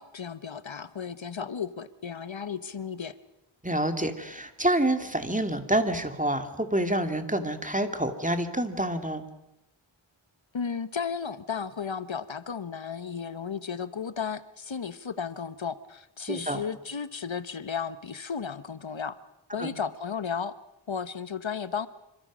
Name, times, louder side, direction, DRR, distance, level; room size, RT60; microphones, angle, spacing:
voice 1, 0.0-3.1 10.5-19.2 19.5-20.5 20.9-21.9, left 6 dB, 70° left, 14 dB, 1.0 m, -34 dB
voice 2, 3.6-9.2 16.3-16.6 19.6-19.7, right 1 dB, 15° right, 7 dB, 2.4 m, -27 dB
27.0 x 25.5 x 6.2 m, 0.87 s
wide cardioid pair, 50°, 48 cm